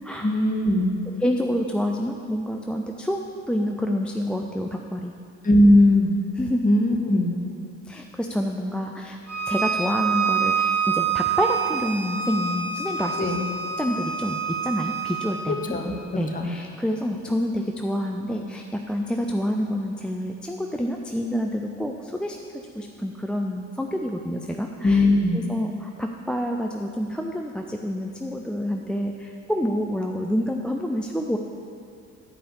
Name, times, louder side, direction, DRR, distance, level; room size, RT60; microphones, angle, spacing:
voice 1, 0.2-1.0 5.4-6.1 6.6-7.3 13.2-13.5 15.5-15.9 16.3-16.5 24.8-25.4, left 1 dB, 20° left, 2 dB, 1.4 m, -19 dB
voice 2, 1.2-3.2 3.5-5.1 6.4-6.7 7.9-9.2 9.5-13.3 13.8-15.7 16.2-22.4 22.8-25.1 25.3-31.4, equal, 5° left, 1 dB, 0.5 m, -28 dB
Bowed string instrument, 9.3-15.3, right 6 dB, 40° right, 1.6 m, -26 dB
9.5 x 5.0 x 6.8 m, 2.4 s
hypercardioid pair, 55°, 37 cm